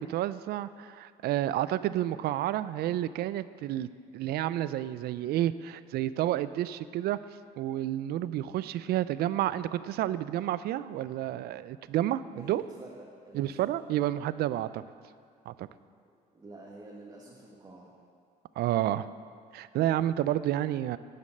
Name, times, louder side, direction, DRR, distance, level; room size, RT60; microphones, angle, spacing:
voice 1, 0.0-3.9 4.1-7.2 7.6-12.6 13.3-14.8 15.5-15.7 18.6-19.1 19.5-21.0, right 13 dB, 70° right, 15 dB, 0.4 m, -30 dB
voice 2, 12.3-13.7 14.5-14.7 16.3-17.9, right 2 dB, 25° right, -4 dB, 1.6 m, -48 dB
10.5 x 7.2 x 6.5 m, 2.2 s
cardioid pair, 110°, 17 cm